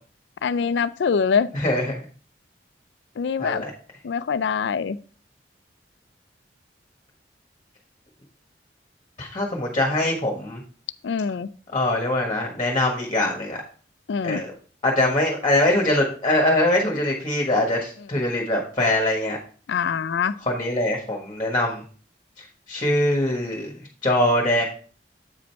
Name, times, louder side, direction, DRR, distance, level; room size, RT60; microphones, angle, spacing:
voice 1, 0.4-1.5 3.2-3.6 4.0-5.0 11.0-11.5 14.1-14.4 19.7-20.3, left 6 dB, 75° left, 15 dB, 0.4 m, -24 dB
voice 2, 1.5-2.0 3.4-3.7 9.2-10.6 11.7-13.6 14.2-14.5 14.8-19.4 20.5-21.8 22.4-23.7 24.0-24.6, left 1 dB, 25° left, 0 dB, 1.4 m, -23 dB
8.1 x 5.1 x 4.6 m, 0.41 s
head